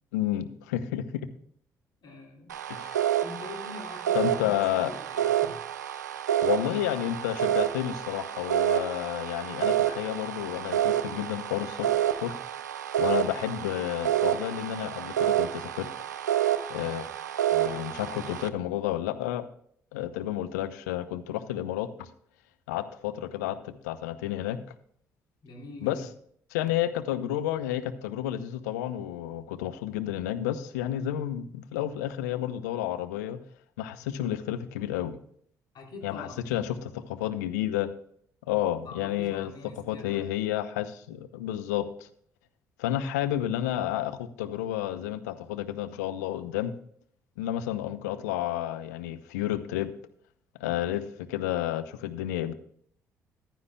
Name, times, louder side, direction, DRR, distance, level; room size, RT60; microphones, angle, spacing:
voice 1, 0.1-1.3 2.7-3.0 4.1-4.9 6.4-11.9 12.2-12.3 13.0-15.9 16.7-17.1 17.5-19.5 19.9-22.1 22.7-24.6 25.8-26.1 26.5-33.4 33.8-35.2 36.0-37.9 38.5-41.9 42.8-46.7 47.4-49.9 50.6-51.0 51.3-52.5, left 12 dB, 75° left, 11 dB, 0.7 m, -31 dB
voice 2, 2.0-2.6 3.2-5.6 17.6-18.3 25.4-26.1 35.7-36.3 38.8-40.2, left 3 dB, 55° left, 1 dB, 2.9 m, -44 dB
sound 1, 2.5-18.5, right 11 dB, 85° right, 0.4 m, -29 dB
14.5 x 11.0 x 2.2 m, 0.64 s
figure-of-eight pair, 45°, 9 cm